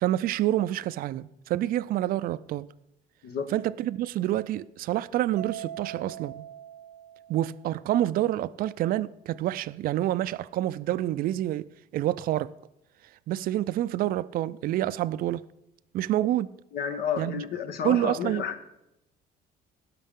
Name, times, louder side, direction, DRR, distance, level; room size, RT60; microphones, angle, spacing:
voice 1, 0.0-2.7 3.5-6.4 7.3-11.7 11.9-12.5 13.3-15.4 15.9-16.5 17.2-17.4 17.8-18.4, right 13 dB, 60° right, 0.4 m, -27 dB
Mallet percussion, 5.4-7.8, right 11 dB, 90° right, 0.7 m, -42 dB
voice 2, 16.7-18.6, left 7 dB, 70° left, 1.2 m, -31 dB
16.5 x 5.9 x 3.7 m
cardioid pair, 110°, 17 cm